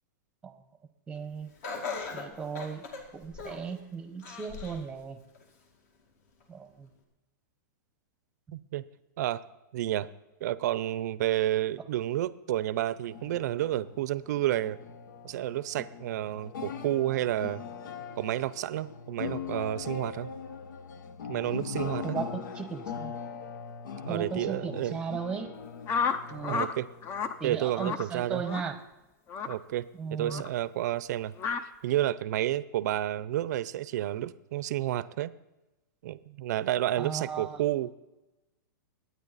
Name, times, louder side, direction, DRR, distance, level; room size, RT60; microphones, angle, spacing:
voice 1, 1.1-1.5 2.1-2.8 3.1-5.2 6.5-6.9 22.0-23.1 24.1-25.5 26.3-26.6 27.4-28.8 30.0-30.4 37.0-37.6, right 6 dB, 10° right, 8 dB, 0.9 m, -36 dB
Laughter, 1.6-3.7 4.2-4.9 5.3-5.4 6.4-6.5, left 4 dB, 50° left, 2.4 m, -38 dB
voice 2, 8.5-8.8 9.2-9.4 9.7-10.1 10.4-14.8 15.2-17.6 18.2-20.3 21.3-22.2 24.1-25.0 26.5-26.9 27.4-28.4 29.5-31.3 31.8-35.3 36.0-37.9, right 13 dB, 60° right, 17 dB, 0.6 m, -30 dB
sound 1, 12.9-27.6, left 7 dB, 75° left, 1.0 m, -41 dB
sound 2, 25.9-26.7 27.0-27.3 27.8-28.0 28.4-28.7 29.3-29.5 30.3-30.5 31.4-31.6, left 6 dB, 25° left, 0.6 m, -31 dB
22.0 x 9.4 x 4.1 m, 1.0 s
supercardioid pair, 155°, 11 cm